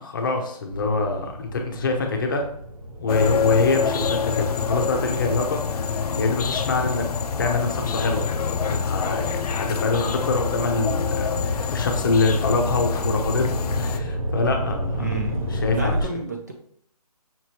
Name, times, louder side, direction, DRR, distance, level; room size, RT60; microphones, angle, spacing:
voice 1, 0.0-2.5 3.0-7.0 7.4-8.3 8.7-15.1 15.5-16.1, left 3 dB, 30° left, 3 dB, 0.7 m, -25 dB
sound 1, 0.7-7.5 8.0-16.0, equal, 60° right, 0.9 m, -32 dB
sound 2, 3.1-14.0, left 5 dB, 70° left, 0.5 m, -26 dB
voice 2, 14.9-16.5, right 4 dB, 25° right, 2 dB, 0.4 m, -30 dB
5.9 x 3.1 x 2.9 m, 0.64 s
hypercardioid pair, 160°, 20 cm